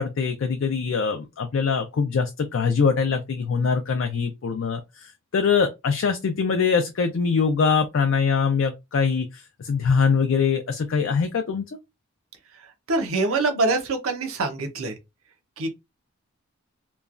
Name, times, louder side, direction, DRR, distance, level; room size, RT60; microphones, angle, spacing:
voice 1, 0.0-11.6, left 5 dB, 65° left, 0.4 m, -23 dB
voice 2, 12.9-15.0 15.6-15.7, right 3 dB, 80° right, 0.7 m, -24 dB
3.0 x 2.2 x 2.4 m
head